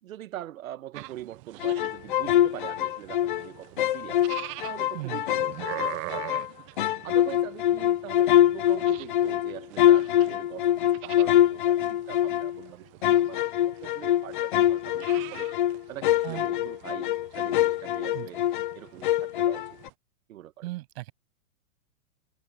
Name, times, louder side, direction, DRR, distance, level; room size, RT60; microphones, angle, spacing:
voice 1, 0.0-4.3 4.6-15.5 15.9-18.4 18.7-19.8 20.3-20.7, right 13 dB, 70° right, 1.5 m, -43 dB
sound 1, 0.9-19.9, right 20 dB, 20° right, 0.6 m, -45 dB
sound 2, 1.6-3.5 3.8-6.5 6.8-12.6 13.0-18.8 19.0-19.9, left 12 dB, 40° left, 0.4 m, -24 dB
voice 2, 4.9-5.4 16.2-16.5 18.1-18.3 20.6-21.1, right 19 dB, 45° right, 7.3 m, -37 dB
hypercardioid pair, 160°, 42 cm